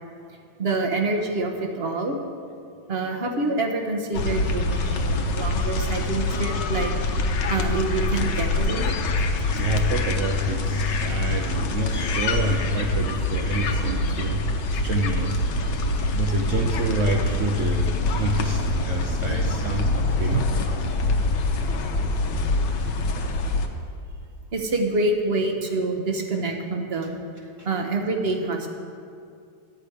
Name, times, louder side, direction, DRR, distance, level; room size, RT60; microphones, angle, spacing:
voice 1, 0.6-2.2 2.9-6.9 7.5-8.9 15.9-16.0 24.5-27.2 27.6-28.7, right 2 dB, 45° right, 3 dB, 0.8 m, -26 dB
sound 1, 4.1-23.7, left 2 dB, 65° left, 1.4 m, -25 dB
voice 2, 9.5-15.5 16.1-20.5 27.6-27.7, right 2 dB, 80° right, 2 dB, 0.7 m, -28 dB
12.0 x 5.1 x 8.5 m, 2.3 s
omnidirectional pair, 2.2 m